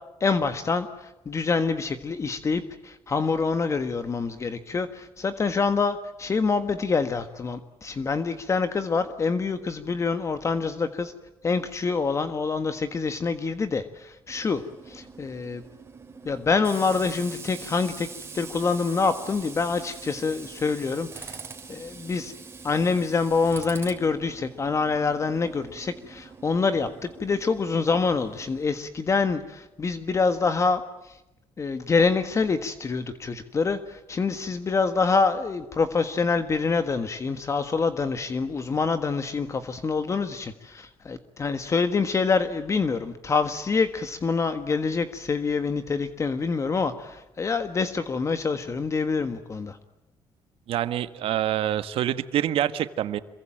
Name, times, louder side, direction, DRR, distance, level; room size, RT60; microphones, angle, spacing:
voice 1, 0.2-11.1 11.4-14.6 14.9-15.6 16.2-18.1 18.3-21.4 21.7-22.3 22.6-31.2 31.6-49.8, left 4 dB, 30° left, 10 dB, 1.5 m, -26 dB
Tools, 14.3-28.6, right 4 dB, 25° right, 3.7 m, -44 dB
voice 2, 50.7-53.2, right 11 dB, 75° right, 12 dB, 1.6 m, -26 dB
27.0 x 23.0 x 9.0 m, 0.92 s
cardioid pair, 125°, 10 cm